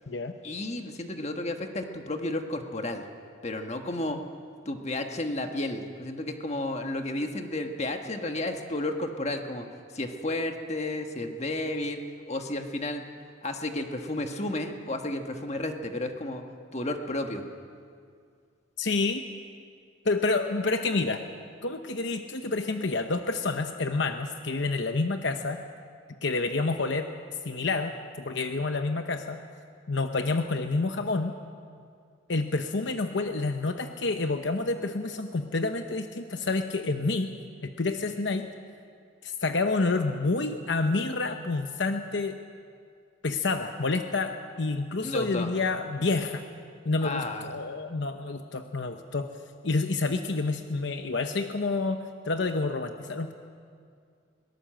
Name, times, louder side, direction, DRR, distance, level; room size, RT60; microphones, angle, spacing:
voice 1, 0.4-3.0 3.4-4.2 4.6-9.7 9.9-12.0 12.3-13.0 13.4-16.4 16.7-17.4 45.0-45.5 47.0-47.5, left 1 dB, 35° left, 5 dB, 1.4 m, -32 dB
voice 2, 18.8-19.2 20.0-21.2 21.6-25.6 26.2-27.1 27.4-27.9 28.2-29.4 29.9-31.3 32.3-37.3 37.6-38.5 39.2-42.4 43.2-46.4 46.8-49.3 49.6-52.0 52.2-53.3, left 3 dB, 60° left, 6 dB, 0.9 m, -28 dB
22.5 x 18.0 x 7.7 m, 2.2 s
head